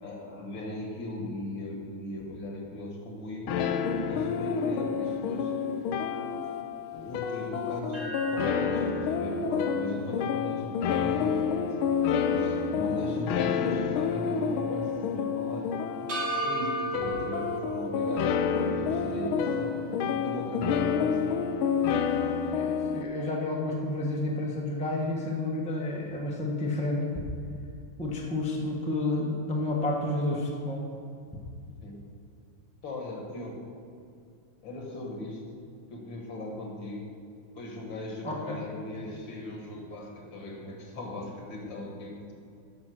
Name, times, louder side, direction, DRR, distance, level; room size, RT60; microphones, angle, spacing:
voice 1, 0.0-3.7 4.1-6.3 6.9-10.7 11.0-11.8 12.2-15.7 16.0-18.3 18.7-19.8 20.1-21.2 31.8-32.0 32.8-33.6 34.6-35.4 35.9-37.0 37.6-42.3, left 1 dB, 65° left, 1 dB, 2.2 m, -38 dB
sound 1, 3.5-23.0, left 6 dB, 90° left, 1.5 m, -29 dB
sound 2, 7.9-12.2 12.6-12.7 16.1-18.7, right 2 dB, 35° right, 1.4 m, -37 dB
voice 2, 22.2-27.1 28.0-30.8 38.2-38.6, left 2 dB, 5° left, -1 dB, 0.8 m, -30 dB
10.5 x 6.0 x 6.3 m, 2.4 s
omnidirectional pair, 2.2 m